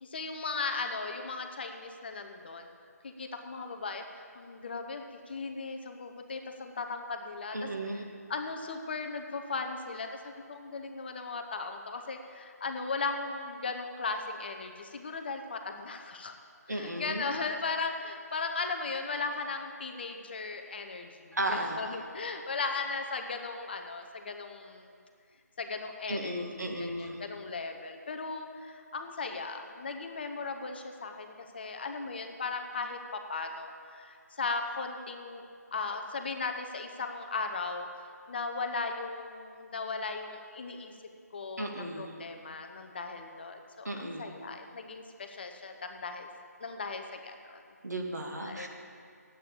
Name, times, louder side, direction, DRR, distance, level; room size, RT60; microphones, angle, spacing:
voice 1, 0.0-2.7 3.0-7.6 8.3-16.3 16.7-24.9 25.6-35.4 35.7-37.9 38.3-40.9 41.3-46.3 46.6-47.6 48.4-48.7, left 4 dB, 35° left, 5 dB, 0.9 m, -37 dB
voice 2, 7.5-8.0 16.7-17.3 21.3-21.8 26.1-27.2 41.6-42.2 43.9-44.4 47.8-48.7, right 1 dB, 75° right, 1 dB, 1.9 m, -35 dB
9.9 x 8.5 x 8.5 m, 2.3 s
figure-of-eight pair, 155°, 9 cm